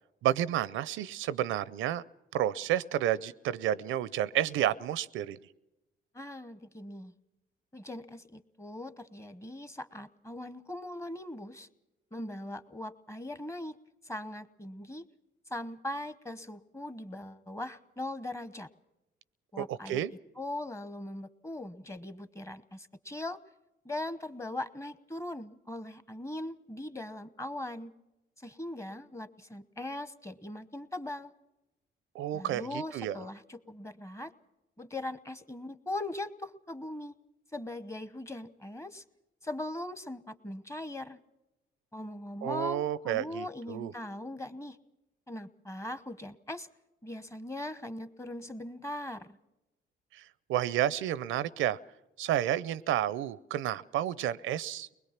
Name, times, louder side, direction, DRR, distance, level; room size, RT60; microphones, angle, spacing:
voice 1, 0.2-2.0 2.3-5.4 19.6-20.1 32.1-33.2 42.4-43.9 50.1-51.8 52.2-54.9, right 12 dB, 85° right, 18 dB, 0.6 m, -31 dB
voice 2, 6.1-7.1 7.7-11.7 12.1-13.8 14.0-15.0 15.5-18.7 19.5-20.0 20.4-23.4 23.8-27.9 28.4-31.3 32.3-34.3 34.8-37.1 37.5-39.0 39.4-41.2 41.9-44.8 45.3-46.7 47.0-49.4, left 1 dB, 15° left, 13 dB, 1.0 m, -40 dB
22.5 x 20.5 x 5.9 m, 0.96 s
cardioid pair, 90°, 20 cm